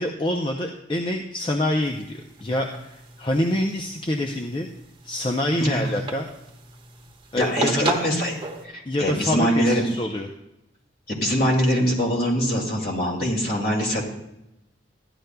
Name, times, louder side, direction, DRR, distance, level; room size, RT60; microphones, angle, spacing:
voice 1, 0.0-4.7 5.0-6.3 7.3-7.9 8.9-10.3, left 1 dB, 25° left, 1 dB, 0.5 m, -26 dB
sound 1, 1.8-8.7, right 3 dB, 25° right, 1.0 m, -36 dB
voice 2, 7.4-8.4 8.6-9.8 11.1-14.0, equal, 55° left, 0 dB, 2.3 m, -23 dB
14.0 x 10.5 x 2.2 m, 0.88 s
head